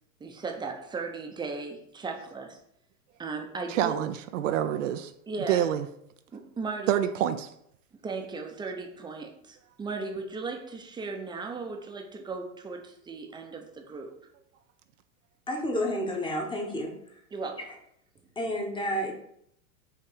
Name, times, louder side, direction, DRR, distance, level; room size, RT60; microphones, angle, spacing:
voice 1, 0.2-2.6 3.2-4.0 5.3-5.6 6.3-7.1 8.0-14.1 17.3-17.7, right 4 dB, 10° right, 3 dB, 0.7 m, -36 dB
voice 2, 3.7-5.1 5.5-5.9 6.9-7.4, right 11 dB, 60° right, 10 dB, 0.5 m, -26 dB
voice 3, 15.5-17.0 18.4-19.1, equal, 10° left, 1 dB, 1.1 m, -30 dB
5.8 x 3.4 x 4.9 m, 0.73 s
hypercardioid pair, 110°, 43 cm